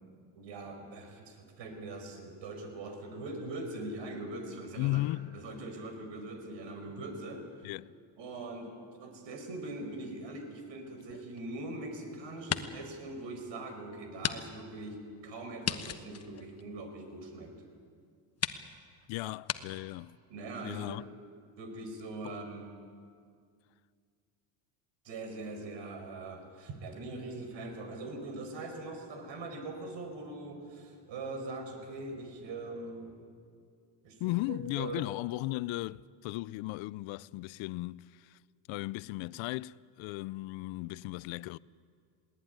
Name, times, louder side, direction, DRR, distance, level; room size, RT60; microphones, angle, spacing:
voice 1, 0.3-5.0 5.3-7.4 8.2-8.7 9.0-17.5 19.2-19.3 20.3-21.0 21.6-22.7 25.0-33.2 34.0-35.0, right 2 dB, 60° right, 5.2 m, -42 dB
voice 2, 4.8-5.4 7.6-7.9 19.1-20.2 20.6-21.0 22.2-22.3 34.2-38.4 38.7-41.6, left 19 dB, 70° left, 0.6 m, -36 dB
sound 1, 11.0-12.0 12.3-12.9 13.4-13.5 14.2-14.4 14.7-14.8 15.6-17.2 17.9-18.0 18.4-18.6 19.4-19.6, left 8 dB, 30° left, 1.1 m, -36 dB
21.0 x 19.0 x 9.5 m
cardioid pair, 105°, 49 cm